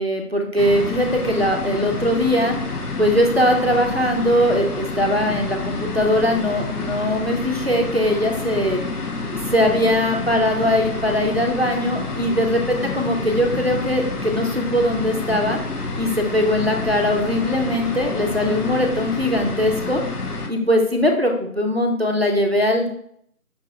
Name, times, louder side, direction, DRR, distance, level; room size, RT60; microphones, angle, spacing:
voice 1, 0.0-2.5 3.0-8.8 9.3-15.6 15.9-20.0 20.5-22.9, equal, 45° right, 2 dB, 0.5 m, -20 dB
sound 1, 0.6-20.5, left 3 dB, 85° left, 0.9 m, -28 dB
Boat Water vehicle, 16.7-19.4, left 1 dB, ahead, 0.6 m, -40 dB
5.5 x 2.9 x 2.4 m, 0.69 s
figure-of-eight pair, 170°, 45 cm